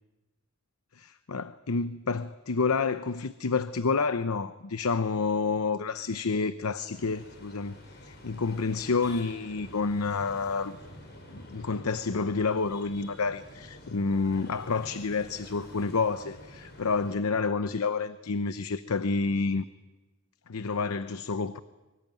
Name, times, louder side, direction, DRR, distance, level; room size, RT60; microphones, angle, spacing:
voice 1, 0.9-10.8 11.3-19.7 20.5-21.6, left 4 dB, 90° left, 13 dB, 0.8 m, -29 dB
sound 1, 6.9-17.2, left 1 dB, 50° left, 6.4 m, -48 dB
25.0 x 23.0 x 9.2 m, 1.2 s
head